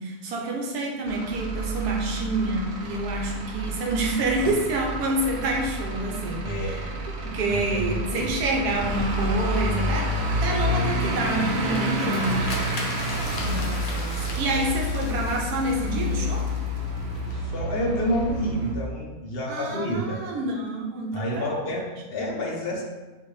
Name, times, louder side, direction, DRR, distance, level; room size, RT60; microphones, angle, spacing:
voice 1, 0.0-6.9 7.2-12.6 13.0-16.5 19.5-21.6 22.2-22.3, right 2 dB, 85° right, 0 dB, 1.3 m, -28 dB
Truck / Idling, 1.0-18.7, equal, 60° right, 0.7 m, -29 dB
voice 2, 6.4-8.3 13.2-13.5 17.3-20.2 21.1-22.8, equal, 55° left, -1 dB, 0.7 m, -30 dB
sound 1, 11.2-17.3, left 3 dB, 70° left, 1.2 m, -39 dB
5.8 x 2.5 x 3.1 m, 1.2 s
omnidirectional pair, 1.6 m